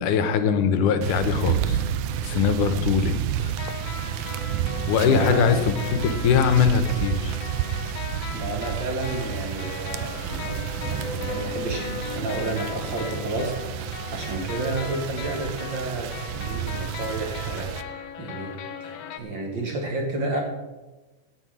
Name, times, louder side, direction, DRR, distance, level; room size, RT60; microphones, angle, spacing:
voice 1, 0.0-1.8 2.2-3.5 4.9-5.6 6.0-7.4, left 6 dB, 90° left, 10 dB, 2.5 m, -22 dB
sound 1, 1.0-17.8, right 11 dB, 80° right, 1.5 m, -30 dB
sound 2, 1.4-3.6 3.9-9.1 10.0-15.5, left 2 dB, 15° right, 3.0 m, -39 dB
sound 3, 1.7-1.8 2.2-2.3 2.8-2.9 3.6-19.2, left 8 dB, 70° left, 1.6 m, -39 dB
voice 2, 5.0-5.5 8.3-18.5 18.8-20.4, right 2 dB, 45° right, 1 dB, 1.9 m, -31 dB
17.0 x 6.4 x 6.2 m, 1.1 s
omnidirectional pair, 3.5 m